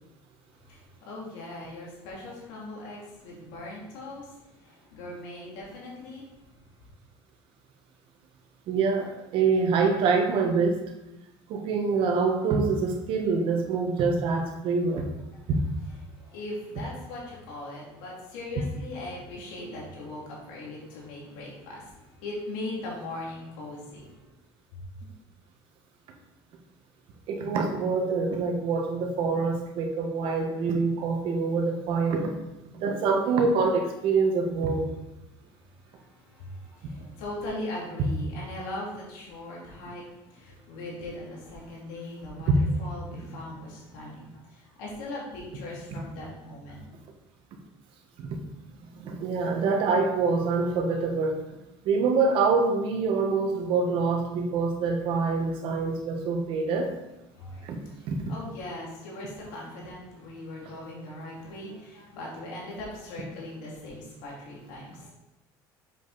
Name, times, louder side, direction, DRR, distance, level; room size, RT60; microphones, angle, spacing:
voice 1, 0.7-6.3 15.3-15.4 15.9-24.3 25.0-25.1 35.7-46.9 57.4-65.1, left 1 dB, 90° left, -4 dB, 2.8 m, -40 dB
voice 2, 8.7-10.8 11.5-15.1 15.5-15.6 27.3-32.3 32.7-34.8 42.5-42.6 48.2-48.3 49.0-51.4 51.8-56.9 57.6-57.8 58.1-58.2, right 4 dB, 65° right, 3 dB, 1.6 m, -25 dB
7.6 x 5.5 x 4.2 m, 0.93 s
supercardioid pair, 110°, 10 cm